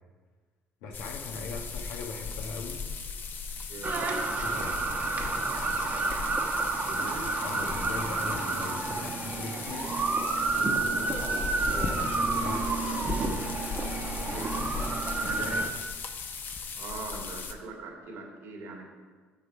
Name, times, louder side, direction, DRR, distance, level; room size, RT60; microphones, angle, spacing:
voice 1, 0.8-2.8 4.4-4.8 6.9-7.1 7.4-9.9 10.5-12.7 14.1-14.6 15.2-15.9, left 3 dB, 85° left, 2 dB, 1.3 m, -40 dB
sound 1, 0.9-17.5, left 5 dB, 45° left, 0.9 m, -37 dB
sound 2, 3.8-15.7, right 3 dB, 40° right, 1.2 m, -30 dB
voice 2, 6.9-7.3 13.9-14.6 16.7-18.9, right 3 dB, 70° right, 0 dB, 2.2 m, -42 dB
7.8 x 6.8 x 5.5 m, 1.5 s
supercardioid pair, 85°, 5 cm